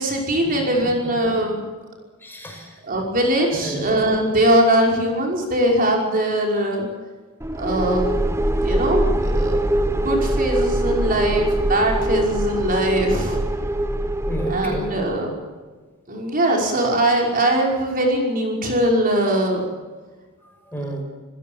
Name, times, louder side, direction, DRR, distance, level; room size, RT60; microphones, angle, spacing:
voice 1, 0.0-1.6 2.8-6.9 7.6-8.3 8.6-9.6 9.9-13.4 14.5-15.3 16.1-19.6, right 1 dB, 40° right, 0 dB, 5.6 m, -21 dB
voice 2, 2.2-2.8 3.5-3.9 14.3-14.9 20.7-21.0, right 1 dB, 10° left, 2 dB, 6.2 m, -31 dB
sound 1, 7.4-15.2, right 1 dB, 10° right, 1.1 m, -23 dB
29.5 x 16.5 x 7.3 m, 1.3 s
head